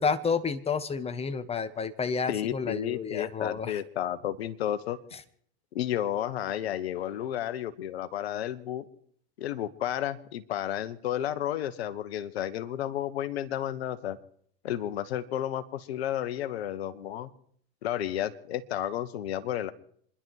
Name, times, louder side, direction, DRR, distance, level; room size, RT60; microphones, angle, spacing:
voice 1, 0.0-3.8, left 5 dB, 20° left, 12 dB, 1.3 m, -30 dB
voice 2, 2.3-5.0 5.7-8.9 9.4-14.2 14.6-17.3 17.8-19.7, left 11 dB, 75° left, 13 dB, 1.3 m, -32 dB
27.0 x 11.5 x 4.7 m, 0.62 s
hypercardioid pair, 95°, 32 cm